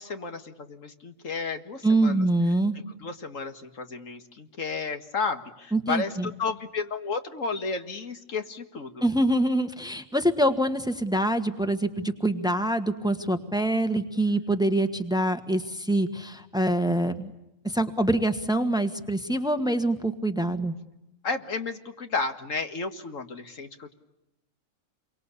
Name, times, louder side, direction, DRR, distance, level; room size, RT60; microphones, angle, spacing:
voice 1, 0.0-2.3 2.7-9.0 21.2-23.9, left 4 dB, 85° left, 8 dB, 2.2 m, -32 dB
voice 2, 1.8-2.7 5.7-6.3 9.0-17.3 17.6-20.7, right 1 dB, 5° right, 9 dB, 1.5 m, -25 dB
28.5 x 24.0 x 8.4 m, 0.92 s
omnidirectional pair, 1.3 m